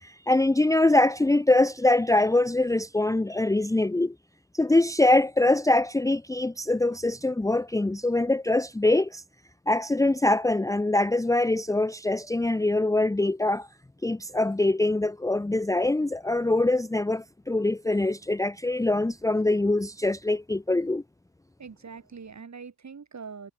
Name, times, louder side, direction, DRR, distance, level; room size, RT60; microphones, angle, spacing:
voice 1, 0.0-4.1 4.5-9.2 9.7-13.7 14.0-21.0, left 2 dB, 10° left, 0.7 m, -23 dB
voice 2, 21.6-23.5, right 5 dB, 45° right, 6.6 m, -43 dB
cardioid pair, 65°, 38 cm